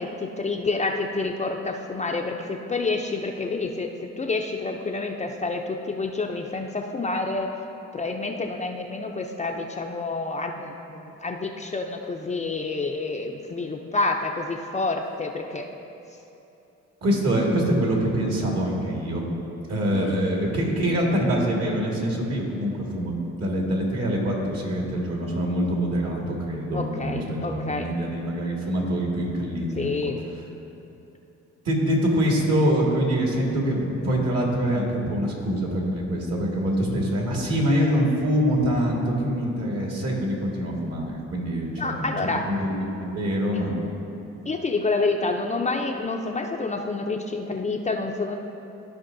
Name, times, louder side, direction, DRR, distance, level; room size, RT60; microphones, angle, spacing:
voice 1, 0.0-3.9 4.2-7.5 7.9-15.7 19.9-20.1 26.7-27.9 29.8-30.2 41.8-42.4 44.5-48.4, left 3 dB, 25° left, 2 dB, 0.5 m, -28 dB
voice 2, 17.0-19.2 19.7-23.1 23.4-29.9 31.6-42.1 42.5-43.7, equal, 55° right, -1 dB, 1.8 m, -25 dB
14.0 x 5.2 x 2.6 m, 2.8 s
cardioid pair, 90°, 30 cm